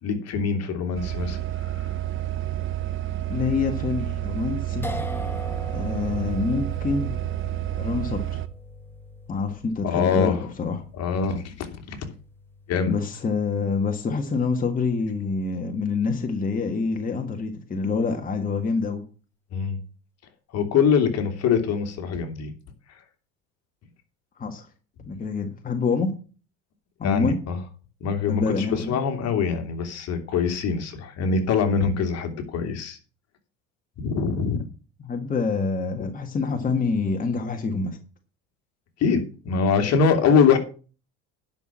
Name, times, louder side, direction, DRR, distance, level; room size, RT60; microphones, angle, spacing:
voice 1, 0.0-1.9 9.8-10.5 10.9-12.1 12.7-12.9 19.5-19.8 20.5-22.5 22.9-23.0 27.0-27.6 28.0-33.0 34.0-34.7 36.0-36.1 39.0-40.6, left 6 dB, 50° left, 6 dB, 2.7 m, -24 dB
sound 1, 0.9-8.5, right 13 dB, 40° right, 1.0 m, -30 dB
voice 2, 3.3-4.9 5.7-7.1 7.8-8.4 9.3-10.3 10.6-10.8 12.9-19.0 24.4-24.7 25.1-26.1 27.0-27.4 28.3-29.0 35.0-38.0, left 4 dB, 25° left, 4 dB, 1.7 m, -26 dB
sound 2, 4.8-17.1, left 1 dB, 5° left, 1.5 m, -42 dB
10.5 x 6.1 x 7.4 m, 0.37 s
supercardioid pair, 100°, 31 cm